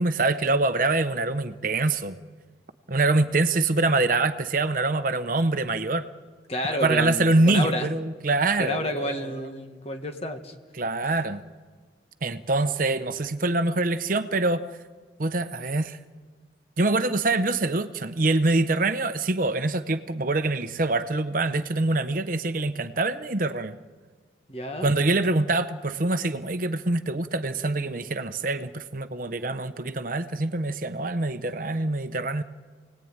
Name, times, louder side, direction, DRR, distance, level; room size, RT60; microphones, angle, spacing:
voice 1, 0.0-2.2 2.9-6.0 6.8-9.5 10.8-11.4 12.2-14.7 15.2-16.0 16.8-23.8 24.8-32.4, right 2 dB, 50° right, 10 dB, 0.9 m, -25 dB
voice 2, 6.5-7.9 8.6-10.5 24.5-24.9, left 1 dB, 35° left, 5 dB, 1.7 m, -30 dB
28.5 x 19.0 x 8.9 m, 1.5 s
head